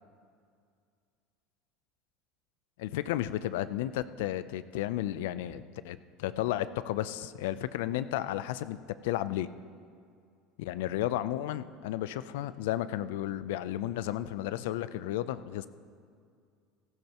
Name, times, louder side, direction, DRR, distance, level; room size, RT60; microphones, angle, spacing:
voice 1, 2.8-9.5 10.6-15.7, left 13 dB, 85° left, 14 dB, 0.5 m, -33 dB
18.0 x 15.5 x 3.0 m, 2.2 s
supercardioid pair, 115°, 0 cm